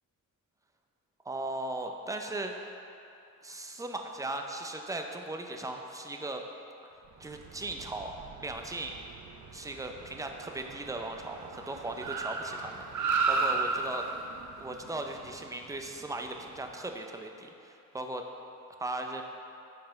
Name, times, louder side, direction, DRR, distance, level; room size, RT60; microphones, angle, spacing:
voice 1, 1.3-2.5 3.4-6.4 7.2-8.1 8.4-9.0 9.5-14.1 14.6-18.2 18.8-19.2, right 2 dB, 10° right, 4 dB, 0.5 m, -38 dB
Car, 7.2-16.7, right 4 dB, 60° right, 0.6 m, -35 dB
5.7 x 4.6 x 6.3 m, 2.7 s
wide cardioid pair, 110°, 34 cm